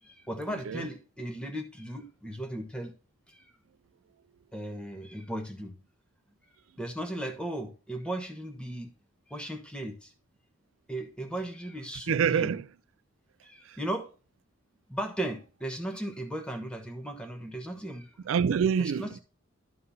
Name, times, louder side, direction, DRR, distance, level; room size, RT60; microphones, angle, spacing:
voice 1, 0.0-2.9 3.3-3.5 4.5-5.7 6.8-8.9 9.3-10.1 10.9-12.5 13.4-14.1 14.9-18.2 18.8-19.2, right 1 dB, 5° left, 1.2 m, -36 dB
voice 2, 12.1-12.6 13.7-13.8 18.3-19.2, right 7 dB, 80° right, 0.4 m, -26 dB
11.5 x 3.8 x 5.5 m
head